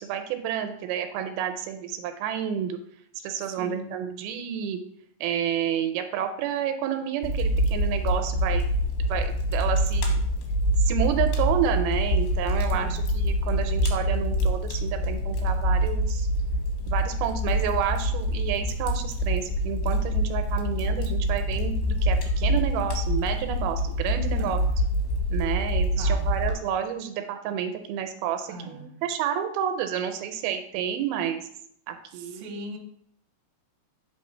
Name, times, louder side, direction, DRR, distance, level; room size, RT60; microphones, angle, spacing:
voice 1, 0.0-2.8 3.2-4.8 5.2-8.6 9.1-10.2 10.8-16.3 16.9-24.6 25.3-31.4 31.9-32.6, right 9 dB, 85° right, 7 dB, 2.4 m, -30 dB
voice 2, 3.4-3.9 12.7-13.1 24.4-24.8 25.9-26.4 28.5-29.0 32.1-32.8, right 2 dB, 70° right, 2 dB, 1.9 m, -40 dB
Fire, 7.2-26.5, equal, 85° left, 2.9 m, -25 dB
7.2 x 4.1 x 3.2 m, 0.67 s
omnidirectional pair, 4.4 m